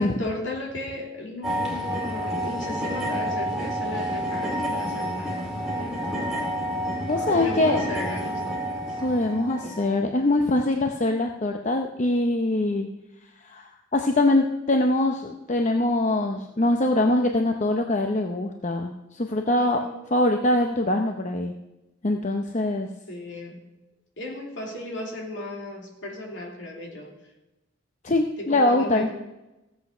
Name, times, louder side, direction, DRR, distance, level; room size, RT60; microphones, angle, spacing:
voice 1, 0.0-6.5 7.3-9.0 9.6-9.8 19.6-20.0 23.1-23.7 24.2-27.1 28.4-29.1, left 1 dB, 60° left, 0 dB, 2.9 m, -35 dB
sound 1, 1.4-9.9, equal, ahead, 2.5 m, -29 dB
voice 2, 7.1-7.8 9.0-12.9 13.4-19.8 20.1-21.5 22.0-22.9 28.0-29.1, left 2 dB, 35° left, 4 dB, 0.7 m, -23 dB
15.0 x 8.0 x 5.5 m, 0.98 s
head